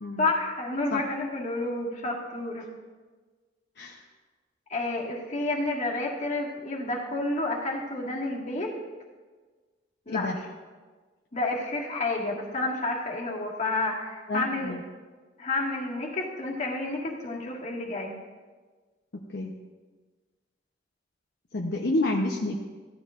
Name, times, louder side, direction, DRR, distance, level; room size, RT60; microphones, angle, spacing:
voice 1, 0.2-2.7 4.7-8.7 10.1-10.3 11.3-14.8 15.4-18.1, left 2 dB, 40° left, -3 dB, 1.9 m, -30 dB
voice 2, 14.3-14.8 19.1-19.5 21.5-22.6, left 2 dB, 60° left, 0 dB, 0.8 m, -29 dB
16.0 x 12.0 x 2.5 m, 1.4 s
head